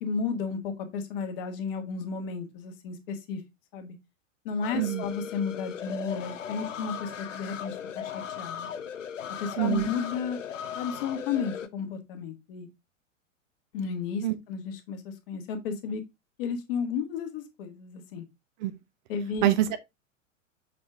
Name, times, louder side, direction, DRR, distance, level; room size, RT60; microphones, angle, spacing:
voice 1, 0.0-3.4 3.7-3.9 4.4-8.7 9.4-10.4 10.7-12.7 13.7-16.0 16.4-18.2 19.1-19.5, left 6 dB, 45° left, 1.6 m, -33 dB
sound 1, 4.6-11.7, left 8 dB, 70° left, 0.8 m, -38 dB
voice 2, 4.7-5.0 9.6-9.9 14.2-14.3 18.6-18.7 19.4-19.8, right 13 dB, 35° right, 0.6 m, -25 dB
6.8 x 4.3 x 3.4 m
figure-of-eight pair, 95°, 38 cm